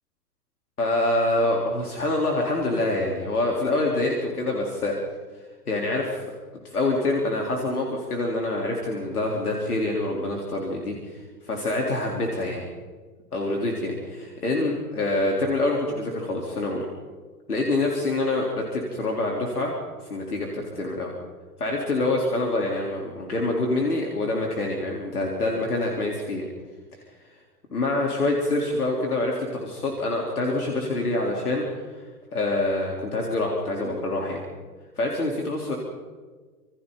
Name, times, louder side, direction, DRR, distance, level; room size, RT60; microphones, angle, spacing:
voice 1, 0.8-4.9 5.7-6.2 6.6-12.7 13.3-16.9 17.5-19.7 20.1-21.1 21.6-26.5 27.7-31.9 32.3-34.4 35.0-35.7, left 2 dB, 70° left, -1 dB, 4.0 m, -26 dB
28.0 x 27.5 x 4.1 m, 1.4 s
figure-of-eight pair, 105°, 46 cm